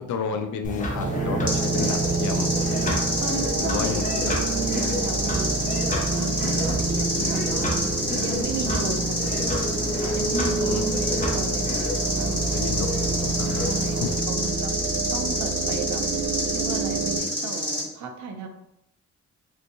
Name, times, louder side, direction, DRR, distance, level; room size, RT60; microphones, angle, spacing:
voice 1, 0.0-2.5 3.6-4.0 6.7-6.8 10.6-10.8 12.5-13.0 13.4-13.7 14.0-14.1, left 6 dB, 85° left, 7 dB, 0.5 m, -30 dB
sound 1, 0.6-14.2, left 2 dB, 25° left, 0.6 m, -32 dB
sound 2, 0.9-17.2, right 4 dB, 45° right, 0.7 m, -28 dB
sound 3, 1.5-17.8, equal, 15° right, 1.2 m, -28 dB
voice 2, 3.2-11.7 12.2-12.6 13.6-14.7 15.1-18.5, right 4 dB, 80° right, 5 dB, 0.5 m, -35 dB
3.7 x 2.8 x 2.6 m, 0.82 s
wide cardioid pair, 150°, 29 cm